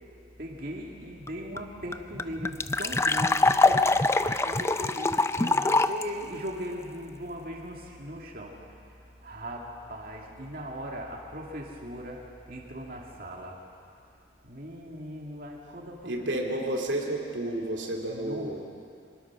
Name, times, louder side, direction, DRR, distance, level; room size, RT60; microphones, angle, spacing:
voice 1, 0.4-4.0 4.4-8.9 9.2-13.6 14.4-16.6 18.1-18.6, equal, 50° right, -1 dB, 2.4 m, -39 dB
sound 1, 1.3-1.4 1.5-1.6 1.9-6.0, left 3 dB, 15° left, 0.4 m, -24 dB
voice 2, 16.0-18.6, right 1 dB, 85° right, 1 dB, 2.5 m, -31 dB
24.5 x 19.5 x 6.2 m, 2.5 s
head